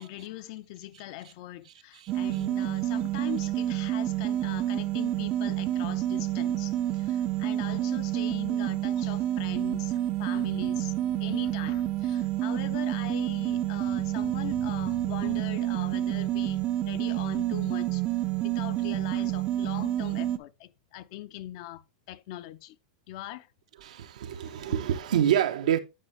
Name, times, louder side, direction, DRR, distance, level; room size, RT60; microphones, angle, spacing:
voice 1, 0.0-18.0 18.4-22.8 23.1-23.5 24.2-24.8 25.3-25.4, left 14 dB, 50° left, 0.6 m, -41 dB
voice 2, 1.6-2.5 23.8-25.8, right 10 dB, 80° right, 0.9 m, -28 dB
sound 1, 2.1-20.4, right 13 dB, 30° right, 0.5 m, -29 dB
9.3 x 5.6 x 3.1 m
supercardioid pair, 150°, 4 cm